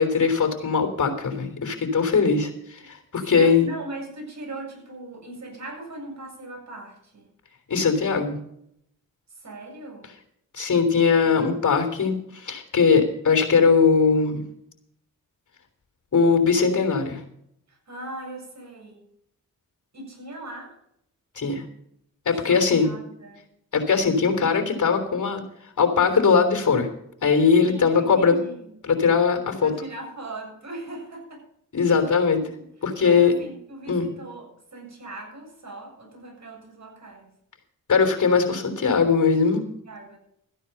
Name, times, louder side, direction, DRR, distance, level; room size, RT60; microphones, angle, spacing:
voice 1, 0.0-3.7 7.7-8.4 10.5-14.4 16.1-17.2 21.4-21.6 22.3-22.9 23.7-25.4 25.8-26.9 27.2-28.4 28.8-29.7 31.7-32.4 32.8-33.3 33.9-34.1 37.9-39.6, left 5 dB, 60° left, 6 dB, 3.6 m, -20 dB
voice 2, 3.3-7.3 9.4-10.1 11.2-12.2 17.7-19.0 19.9-20.7 22.3-23.4 27.6-29.1 29.6-31.4 32.4-32.5 33.0-37.3 39.7-40.2, right 2 dB, 55° right, 1 dB, 7.6 m, -39 dB
14.5 x 10.0 x 5.5 m, 0.71 s
cardioid pair, 60°, 34 cm